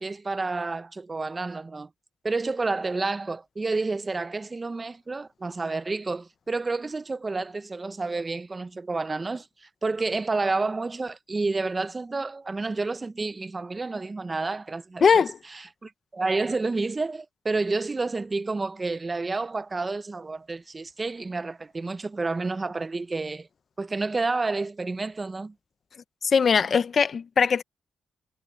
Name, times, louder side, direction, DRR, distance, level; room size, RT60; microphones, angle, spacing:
voice 1, 0.0-1.9 2.2-15.0 15.5-23.5 23.8-25.5, right 3 dB, 30° right, 0.8 m, -30 dB
voice 2, 15.0-15.4 26.2-27.6, left 6 dB, 55° left, 0.9 m, -20 dB
cardioid pair, 75°, 0 cm